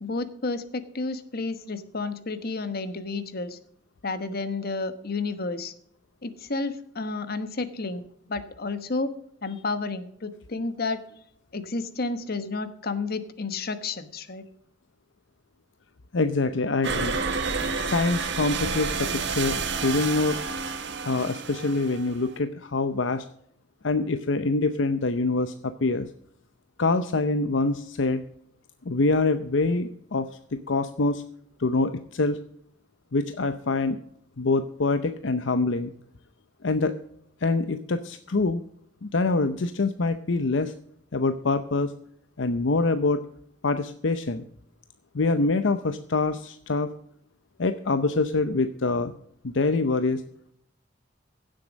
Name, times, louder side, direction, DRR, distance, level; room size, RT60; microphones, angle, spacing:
voice 1, 0.0-3.6 4.0-5.7 6.2-8.0 8.3-9.1 9.4-11.0 11.5-14.4, left 3 dB, 55° left, 12 dB, 1.2 m, -31 dB
voice 2, 16.1-17.2 17.7-20.4 21.0-23.2 23.8-26.1 26.8-28.2 28.9-31.2 31.6-32.4 33.1-34.0 34.4-35.9 36.6-36.9 37.4-38.6 39.0-40.7 41.1-41.9 42.4-43.2 43.6-44.4 45.1-46.9 47.6-49.1 49.4-50.2, left 3 dB, 70° left, 10 dB, 0.7 m, -25 dB
sound 1, 16.8-22.4, right 4 dB, 65° right, 1.5 m, -30 dB
16.0 x 7.6 x 5.1 m, 0.69 s
head